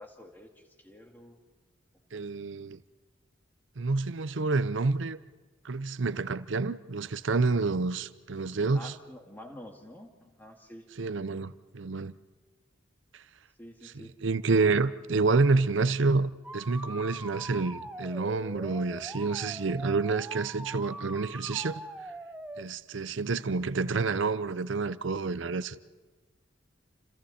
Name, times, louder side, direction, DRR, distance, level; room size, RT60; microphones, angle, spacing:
voice 1, 0.0-1.4 2.1-2.3 8.7-10.9 13.6-14.2, left 1 dB, 10° left, 2.3 m, -48 dB
voice 2, 2.1-2.8 3.8-5.2 5.6-8.9 11.0-12.1 13.1-13.2 14.2-21.8 22.6-25.8, right 3 dB, 65° right, 0.7 m, -28 dB
sound 1, 16.4-22.6, right 1 dB, 5° right, 0.8 m, -42 dB
29.0 x 27.0 x 4.3 m
head